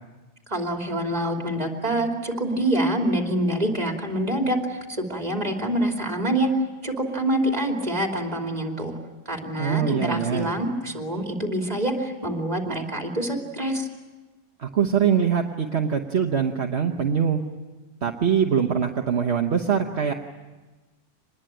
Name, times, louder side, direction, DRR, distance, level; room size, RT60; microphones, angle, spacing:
voice 1, 0.5-6.5 6.8-9.0 9.3-13.9, right 1 dB, 35° right, 3 dB, 2.9 m, -26 dB
voice 2, 9.6-10.5 14.6-17.4 18.0-20.1, right 7 dB, 65° right, 3 dB, 1.4 m, -23 dB
25.5 x 20.5 x 8.9 m, 1.2 s
omnidirectional pair, 1.2 m